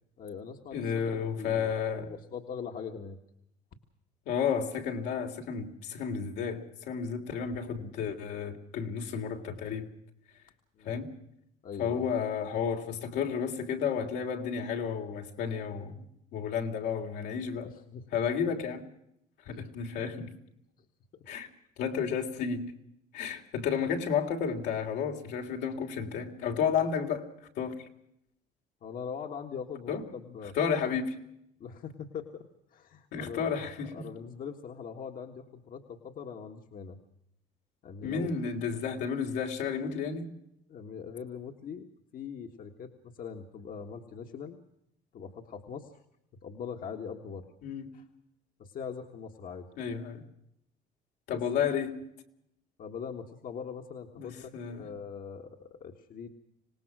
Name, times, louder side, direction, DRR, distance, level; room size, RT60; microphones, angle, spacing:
voice 1, 0.2-3.2 10.8-11.0 11.6-12.1 17.6-18.1 19.5-19.6 21.1-21.3 28.8-30.7 31.6-33.5 33.8-37.0 37.8-38.4 40.7-41.9 42.1-44.6 45.1-45.9 46.4-47.5 47.9-48.0 48.6-49.7 51.3-51.6 52.8-56.3, left 6 dB, 55° left, 1.7 m, -42 dB
voice 2, 0.7-2.1 4.3-9.9 10.8-11.1 11.8-16.0 16.3-17.7 18.1-18.8 19.4-20.3 21.3-21.5 21.8-22.6 23.1-27.3 27.5-27.9 29.9-30.0 30.5-31.2 33.1-34.1 38.0-40.3 47.6-47.9 49.8-50.2 51.3-52.0 54.2-54.9, left 7 dB, 85° left, 3.2 m, -32 dB
26.0 x 18.5 x 6.2 m
cardioid pair, 110°, 17 cm